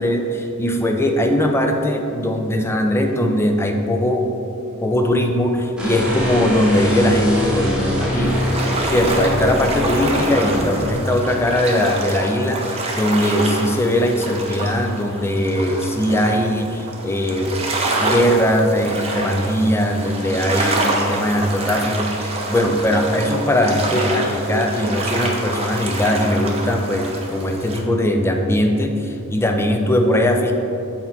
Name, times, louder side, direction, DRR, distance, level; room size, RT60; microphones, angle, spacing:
voice 1, 0.0-4.3 4.8-8.5 8.8-17.6 18.0-30.5, left 1 dB, 10° left, 3 dB, 0.4 m, -20 dB
sound 1, 5.8-11.0, left 1 dB, 5° right, 1.1 m, -23 dB
sound 2, 8.2-27.8, right 2 dB, 30° right, 0.7 m, -27 dB
7.9 x 4.3 x 4.0 m, 2.8 s
head